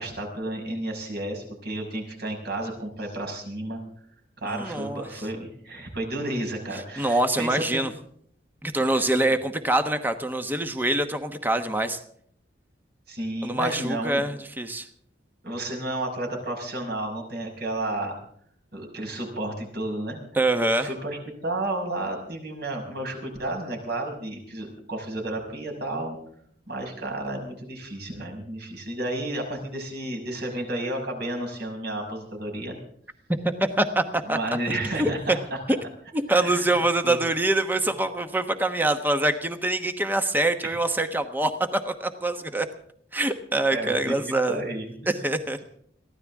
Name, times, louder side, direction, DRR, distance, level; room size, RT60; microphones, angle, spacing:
voice 1, 0.0-3.8 4.4-7.8 8.9-9.2 13.1-14.2 15.4-18.2 18.7-20.2 20.8-26.2 26.7-32.8 34.3-35.4 36.3-37.2 40.6-40.8 43.7-44.2 44.5-45.3, right 1 dB, 60° right, 1 dB, 5.9 m, -32 dB
voice 2, 4.5-5.1 7.0-7.9 8.6-12.0 13.4-14.9 20.3-20.9 33.8-34.4 35.0-35.4 35.7-35.8 36.1-42.7 43.1-44.6 45.1-45.6, right 2 dB, 10° right, 7 dB, 1.1 m, -25 dB
23.0 x 16.0 x 3.6 m, 0.64 s
head